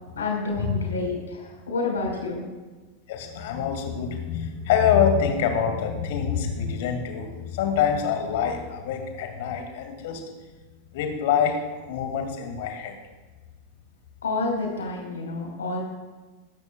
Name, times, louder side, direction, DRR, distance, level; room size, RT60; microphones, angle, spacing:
voice 1, 0.1-2.4 14.2-15.8, left 3 dB, 65° left, -1 dB, 4.9 m, -29 dB
voice 2, 3.1-10.2 10.9-11.6 11.9-13.0, left 7 dB, 50° left, 4 dB, 2.4 m, -25 dB
23.5 x 12.5 x 2.4 m, 1.3 s
figure-of-eight pair, 90°, 0 cm